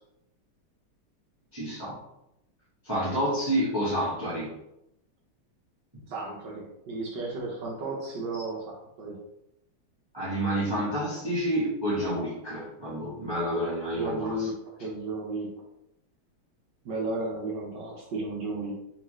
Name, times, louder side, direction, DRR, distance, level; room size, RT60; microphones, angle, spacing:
voice 1, 1.5-2.0 2.8-4.5 10.1-14.5, equal, 15° right, -9 dB, 1.2 m, -29 dB
voice 2, 6.1-9.2 13.9-14.5 14.8-15.5 16.8-18.8, right 2 dB, 65° right, -2 dB, 1.4 m, -33 dB
3.7 x 3.7 x 3.1 m, 0.85 s
omnidirectional pair, 2.3 m